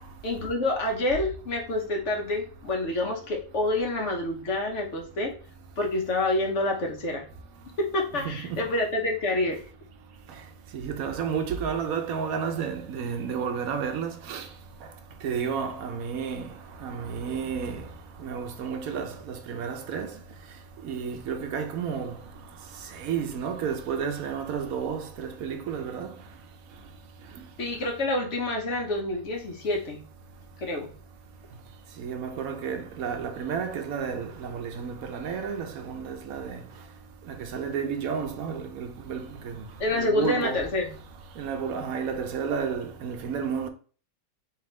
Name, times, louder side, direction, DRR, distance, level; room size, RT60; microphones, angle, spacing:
voice 1, 0.2-5.3 5.8-7.2 7.8-9.6 27.6-30.0 30.6-30.9 39.8-41.0, left 2 dB, 55° left, 1.3 m, -27 dB
voice 2, 8.2-8.6 10.7-14.4 15.2-16.5 16.8-17.8 18.2-20.1 20.8-22.1 23.0-26.1 32.0-36.6 37.3-39.6 39.9-40.6 41.4-43.7, right 6 dB, 75° right, 1.1 m, -31 dB
4.2 x 3.5 x 3.2 m
omnidirectional pair, 1.5 m